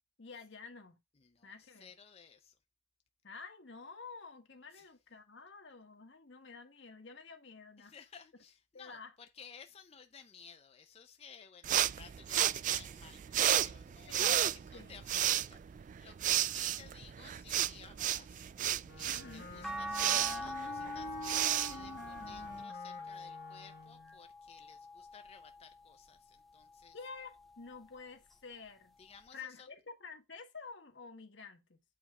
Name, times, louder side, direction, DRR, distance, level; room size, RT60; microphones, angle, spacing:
voice 1, 0.2-1.0 1.4-1.9 3.2-7.9 8.7-9.1 14.1-15.0 19.0-19.5 26.9-29.0 29.3-31.8, left 4 dB, 80° left, 1.4 m, -50 dB
voice 2, 1.2-2.6 4.7-4.9 7.8-18.5 18.9-27.0 29.0-29.7, left 6 dB, 35° left, 0.6 m, -56 dB
sound 1, 11.6-22.6, right 11 dB, 45° right, 0.3 m, -33 dB
Wind instrument woodwind instrument, 18.8-24.2, left 1 dB, 60° left, 1.3 m, -48 dB
sound 2, 19.6-25.9 26.5-27.9 29.3-29.4, left 1 dB, ahead, 0.8 m, -44 dB
8.5 x 3.5 x 4.8 m
head